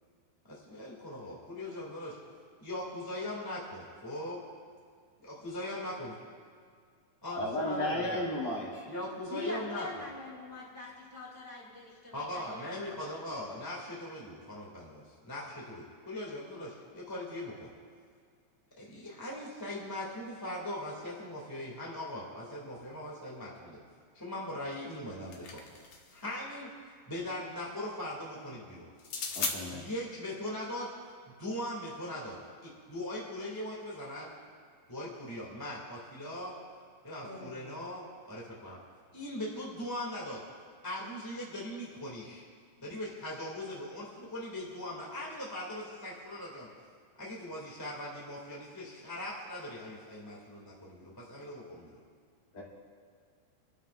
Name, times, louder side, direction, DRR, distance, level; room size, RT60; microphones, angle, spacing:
voice 1, 0.4-2.2 2.6-4.4 5.2-6.1 7.2-8.4 8.8-10.0 12.1-17.7 18.8-23.8 24.1-25.6 26.1-26.7 27.1-28.9 29.7-30.9 31.4-34.3 34.9-36.5 37.0-38.8 39.1-40.4 40.8-42.4 42.8-46.7 47.1-52.0, left 1 dB, 10° left, -5 dB, 1.2 m, -40 dB
voice 2, 7.3-8.8 29.3-29.8 52.5-52.6, left 1 dB, 45° left, -6 dB, 3.9 m, -34 dB
voice 3, 9.3-13.1 37.2-37.8, left 2 dB, 5° right, -5 dB, 2.5 m, -43 dB
sound 1, 24.9-26.2 29.0-29.6, left 4 dB, 60° left, 1.6 m, -36 dB
26.5 x 13.0 x 2.5 m, 2.1 s
omnidirectional pair, 4.5 m